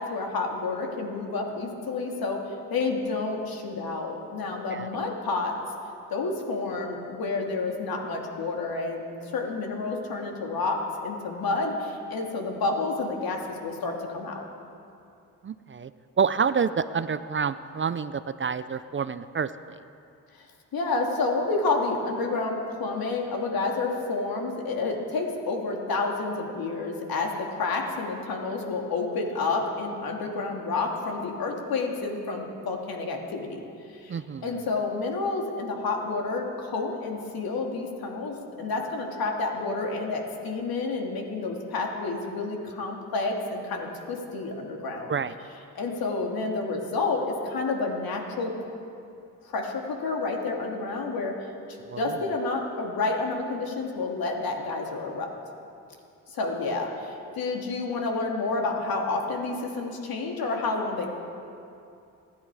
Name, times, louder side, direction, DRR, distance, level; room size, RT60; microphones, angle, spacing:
voice 1, 0.0-2.4 2.7-5.5 6.1-14.5 20.3-20.5 20.7-33.6 33.9-34.2 34.4-45.1 45.7-48.5 49.4-51.3 52.0-55.3 56.3-61.1, left 3 dB, 70° left, 1 dB, 2.7 m, -29 dB
voice 2, 15.4-15.9 16.2-19.5 34.1-34.4 45.1-45.3 51.9-52.0, right 6 dB, 30° right, 13 dB, 0.6 m, -28 dB
26.0 x 10.5 x 4.9 m, 2.6 s
supercardioid pair, 70°, 38 cm